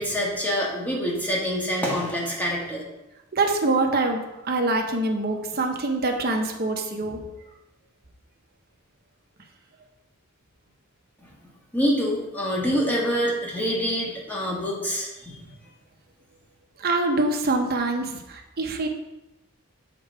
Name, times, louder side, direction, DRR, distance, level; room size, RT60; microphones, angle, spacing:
voice 1, 0.0-2.8 11.2-11.3 11.7-15.5, equal, 10° left, -4 dB, 1.5 m, -26 dB
voice 2, 3.3-7.2 16.8-18.9, right 2 dB, 45° right, 3 dB, 0.9 m, -25 dB
6.4 x 3.9 x 4.6 m, 0.95 s
head